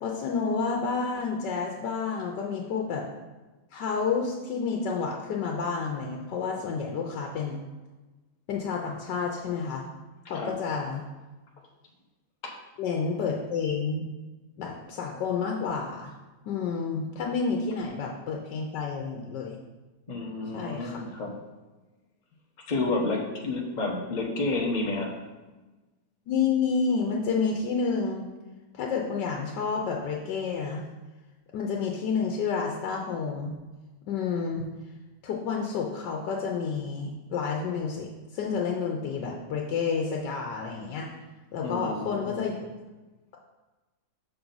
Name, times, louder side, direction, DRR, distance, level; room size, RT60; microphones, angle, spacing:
voice 1, 0.0-3.0 3.7-7.6 8.5-9.8 10.3-11.0 12.8-14.1 14.6-16.1 16.4-19.6 20.5-21.1 26.3-28.3 28.7-30.8 31.5-33.5 34.1-34.7 35.2-41.1 41.5-42.7, left 5 dB, 85° left, 0 dB, 1.4 m, -30 dB
voice 2, 20.1-21.3 22.7-25.1 41.6-42.4, left 2 dB, 35° left, -1 dB, 0.9 m, -30 dB
6.1 x 5.9 x 3.9 m, 1.2 s
omnidirectional pair, 1.8 m